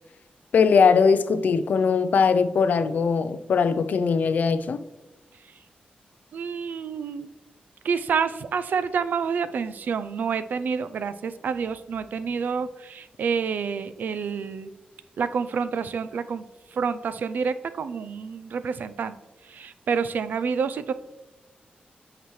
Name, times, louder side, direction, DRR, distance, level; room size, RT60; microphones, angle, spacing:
voice 1, 0.5-4.8, left 5 dB, 65° left, 0.4 m, -20 dB
voice 2, 6.3-7.3 7.8-14.7 15.2-16.4 16.7-19.2 19.4-20.9, right 6 dB, 75° right, 0.4 m, -28 dB
8.2 x 5.9 x 3.1 m
wide cardioid pair, 170°, 3 cm